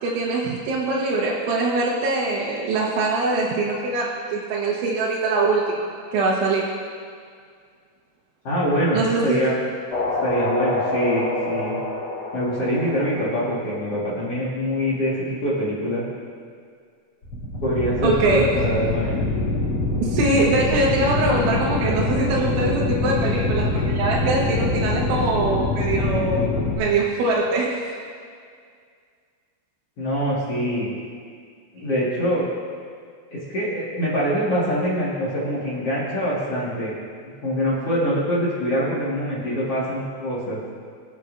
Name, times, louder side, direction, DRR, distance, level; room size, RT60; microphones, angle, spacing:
voice 1, 0.0-6.7 8.9-9.4 18.0-18.5 20.0-26.5 26.8-27.9, right 3 dB, 90° right, -6 dB, 3.6 m, -23 dB
voice 2, 8.4-9.5 10.2-11.8 12.3-16.0 17.6-19.2 30.0-30.9 31.7-32.5 33.3-36.9 37.4-40.6, equal, 55° left, -8 dB, 1.7 m, -24 dB
sound 1, 9.9-13.8 17.2-26.8, left 2 dB, 35° left, 2.9 m, -25 dB
24.0 x 8.2 x 2.6 m, 2.1 s
omnidirectional pair, 5.3 m